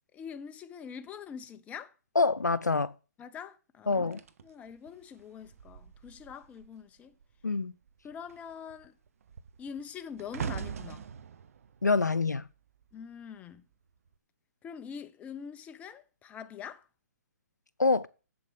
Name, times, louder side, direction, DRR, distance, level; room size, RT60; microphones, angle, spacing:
voice 1, 0.1-1.9 3.2-7.1 8.0-9.0 9.6-11.1 12.9-13.6 14.6-16.9, left 7 dB, 15° left, 0.9 m, -44 dB
voice 2, 2.1-2.9 3.9-4.2 7.4-7.7 11.8-12.5 17.8-18.1, left 3 dB, 90° left, 0.8 m, -26 dB
sound 1, 4.1-6.8 7.1-7.5 7.8-13.1 13.9-14.1, right 7 dB, 55° right, 1.0 m, -43 dB
8.4 x 7.7 x 7.6 m
figure-of-eight pair, 130°, 9 cm